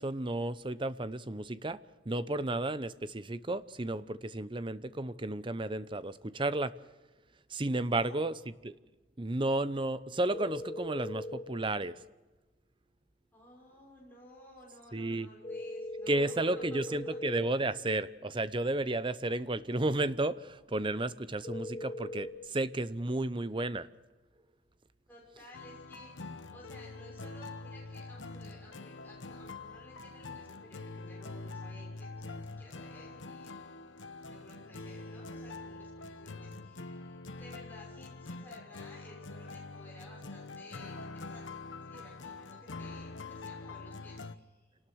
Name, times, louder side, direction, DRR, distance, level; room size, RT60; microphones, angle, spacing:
voice 1, 0.0-1.8 2.1-6.7 7.5-8.3 8.6-8.7 9.2-11.9 14.9-15.3 16.1-23.9, right 2 dB, 25° right, 14 dB, 0.8 m, -32 dB
voice 2, 7.8-8.3 13.3-17.2 19.4-19.7 25.1-33.6 34.3-44.7, left 1 dB, 10° left, -3 dB, 6.2 m, -55 dB
sound 1, 10.3-11.4 15.4-17.4 21.4-22.3, left 1 dB, 30° left, 4.5 m, -40 dB
sound 2, 25.5-44.4, left 3 dB, 85° left, 1.1 m, -45 dB
27.5 x 19.0 x 6.3 m, 1.2 s
head